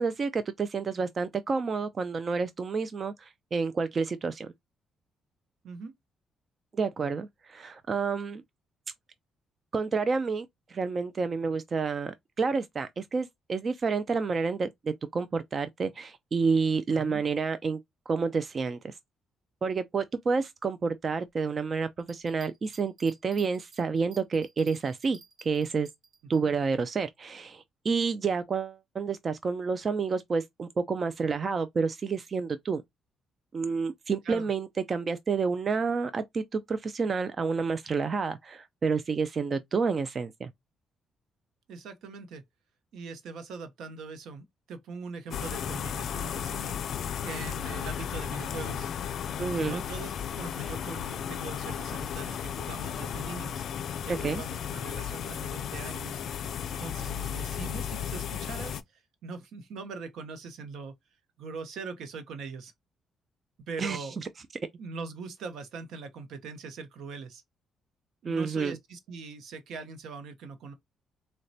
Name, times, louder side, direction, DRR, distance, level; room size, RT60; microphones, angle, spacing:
voice 1, 0.0-4.5 6.7-8.4 9.7-17.8 18.1-19.0 19.6-25.9 26.3-32.8 33.5-40.5 49.4-49.8 54.1-54.4 63.8-64.3 68.3-68.8, right 5 dB, 40° right, 0.3 m, -29 dB
voice 2, 16.9-17.2 34.2-34.5 41.7-42.4 42.9-46.8 47.2-48.9 49.5-50.1 50.4-53.6 54.0-56.2 56.8-60.9 61.4-62.7 63.7-64.2 64.8-67.4 68.2-70.7, right 4 dB, 75° right, 0.7 m, -41 dB
sound 1, 22.0-26.4, right 4 dB, 60° right, 1.2 m, -55 dB
sound 2, 45.3-58.8, left 8 dB, 65° left, 0.3 m, -34 dB
3.9 x 2.1 x 2.6 m
cardioid pair, 90°, 0 cm